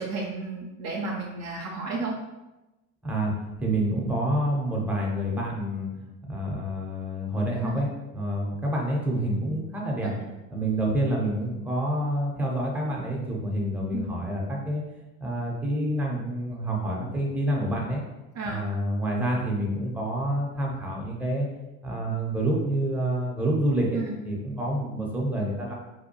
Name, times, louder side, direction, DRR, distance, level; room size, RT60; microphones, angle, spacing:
voice 1, 0.0-2.2 7.6-7.7 13.9-14.1 18.3-18.6 23.9-24.1, right 3 dB, 40° right, -2 dB, 0.5 m, -32 dB
voice 2, 3.0-5.9 6.2-10.1 10.5-14.8 15.2-18.0 18.5-21.5 21.8-25.7, right 1 dB, 5° right, -2 dB, 0.7 m, -28 dB
2.7 x 2.1 x 2.8 m, 1.0 s
hypercardioid pair, 75°, 41 cm